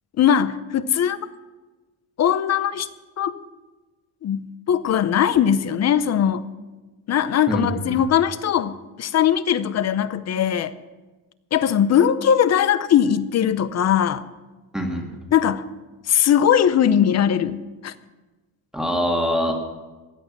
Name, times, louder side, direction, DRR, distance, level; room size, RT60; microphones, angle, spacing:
voice 1, 0.2-1.2 2.2-2.9 3.2-3.4 4.2-6.5 7.1-10.7 11.5-14.2 15.3-15.6 16.1-17.6 17.8-17.9, left 9 dB, 40° left, 14 dB, 0.7 m, -20 dB
voice 2, 7.5-8.0 14.7-15.1 18.7-19.5, equal, ahead, 0 dB, 1.7 m, -24 dB
16.5 x 11.0 x 6.0 m, 1.2 s
cardioid pair, 150°, 41 cm